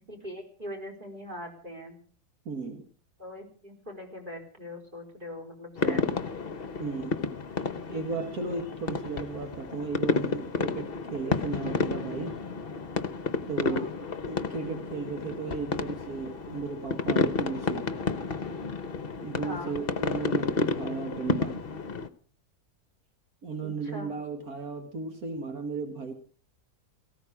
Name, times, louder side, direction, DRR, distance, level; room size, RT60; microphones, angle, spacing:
voice 1, 0.1-2.0 3.2-6.3 13.5-14.2 19.4-19.7 23.6-24.1, left 1 dB, 30° right, 5 dB, 4.4 m, -41 dB
voice 2, 2.5-2.8 5.8-6.1 6.8-7.2 7.9-12.4 13.5-13.9 14.3-17.9 19.2-21.7 23.4-26.1, right 4 dB, 75° right, 5 dB, 2.2 m, -35 dB
sound 1, 5.8-22.1, left 4 dB, 45° left, 1.0 m, -31 dB
18.0 x 16.0 x 4.9 m, 0.43 s
omnidirectional pair, 1.6 m